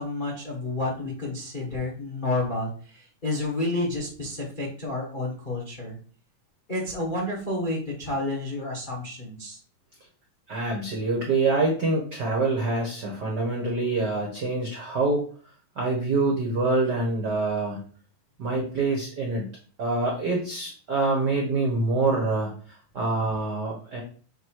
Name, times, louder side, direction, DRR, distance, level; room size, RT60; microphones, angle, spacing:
voice 1, 0.0-6.0 6.7-9.6, left 2 dB, 75° left, -2 dB, 0.4 m, -30 dB
voice 2, 10.5-15.2 15.7-17.8 18.4-19.5 19.8-24.0, right 3 dB, 75° right, -1 dB, 0.9 m, -26 dB
7.9 x 2.8 x 4.6 m, 0.43 s
omnidirectional pair, 3.9 m